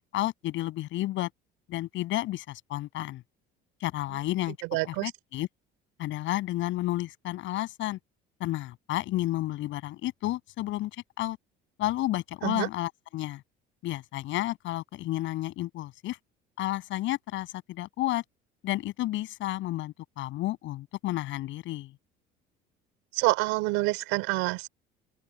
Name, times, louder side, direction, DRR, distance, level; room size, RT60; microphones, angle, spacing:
voice 1, 0.1-1.3 1.7-3.2 3.8-4.6 4.8-5.5 6.0-8.0 8.4-11.4 11.8-13.4 13.8-16.2 16.6-18.2 18.6-21.9, left 16 dB, 70° left, 7.7 m, -31 dB
voice 2, 4.7-5.1 12.4-12.7 23.1-24.7, right 23 dB, 85° right, 4.2 m, -27 dB
open air
supercardioid pair, 100°, 21 cm